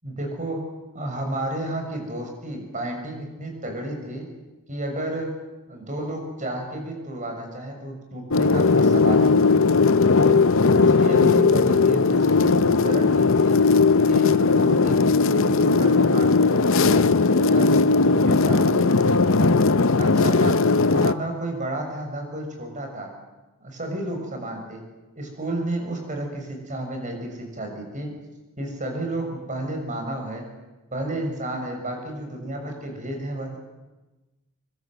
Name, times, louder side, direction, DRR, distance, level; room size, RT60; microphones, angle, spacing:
voice 1, 0.0-0.7 0.9-4.3 4.7-5.3 5.7-9.6 10.1-13.6 14.0-18.8 19.4-23.1 23.6-24.8 25.1-28.1 28.6-30.5 30.9-33.6, right 1 dB, 35° right, 3 dB, 6.7 m, -31 dB
sound 1, 8.3-21.1, left 4 dB, 60° left, 0.8 m, -18 dB
25.5 x 24.5 x 8.0 m, 1.1 s
head